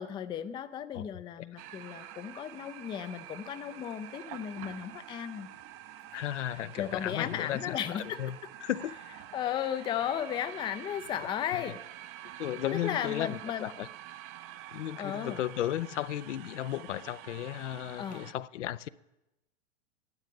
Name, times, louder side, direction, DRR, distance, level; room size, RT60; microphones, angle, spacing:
voice 1, 0.0-5.5 6.8-8.2 9.3-11.8 12.7-13.7 15.0-15.4 18.0-18.3, left 10 dB, 15° left, 0.4 m, -35 dB
sound 1, 1.6-18.3, right 12 dB, 35° right, 0.7 m, -47 dB
voice 2, 6.1-9.0 11.5-11.7 12.4-13.9 14.7-18.9, left 12 dB, 70° left, 0.6 m, -35 dB
14.5 x 10.5 x 5.4 m
hypercardioid pair, 105°, 37 cm